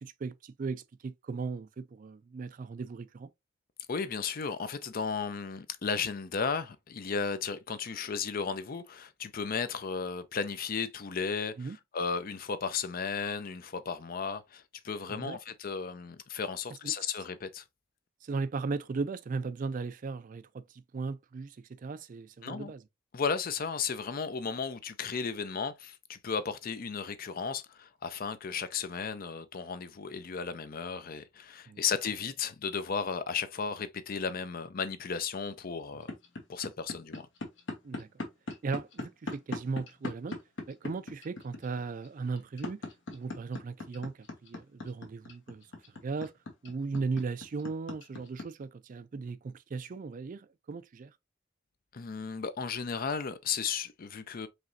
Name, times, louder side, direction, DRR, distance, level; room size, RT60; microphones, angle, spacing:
voice 1, 0.0-3.3 11.6-11.8 15.1-15.4 16.8-16.9 18.2-22.8 31.7-31.8 35.9-36.0 37.8-38.1 38.6-40.4 40.7-42.8 43.1-45.7 46.0-46.3 46.6-51.1, right 4 dB, 45° right, 0.4 m, -37 dB
voice 2, 3.9-17.6 22.4-22.7 23.1-36.1 36.5-37.3 51.9-54.5, left 5 dB, 50° left, 0.5 m, -34 dB
sound 1, 36.0-48.4, left 2 dB, 65° left, 1.2 m, -39 dB
4.9 x 3.0 x 2.6 m
head